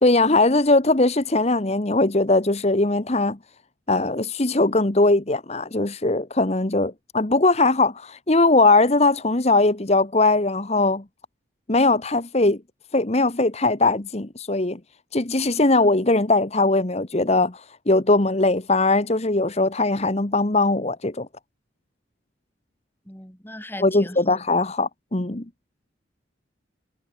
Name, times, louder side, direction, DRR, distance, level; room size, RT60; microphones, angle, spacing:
voice 1, 0.0-3.4 3.9-11.0 11.7-12.6 12.9-14.8 15.1-21.3 23.8-25.4, left 2 dB, 35° left, 1.2 m, -20 dB
voice 2, 23.1-24.4, left 1 dB, 10° left, 6.0 m, -38 dB
head